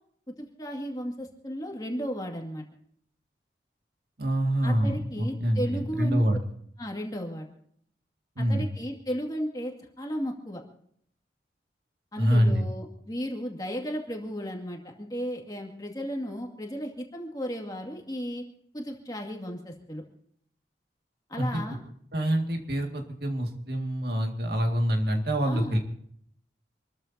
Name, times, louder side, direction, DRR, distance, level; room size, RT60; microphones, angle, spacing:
voice 1, 0.4-2.6 4.6-6.2 6.8-7.5 8.4-10.6 12.1-18.4 18.7-20.0 21.3-21.8 25.5-25.8, equal, 20° left, 2 dB, 2.2 m, -34 dB
voice 2, 4.2-6.4 8.4-8.7 12.2-12.6 21.4-21.5 22.1-25.8, equal, 60° right, 3 dB, 2.2 m, -26 dB
27.0 x 14.0 x 2.8 m, 0.66 s
head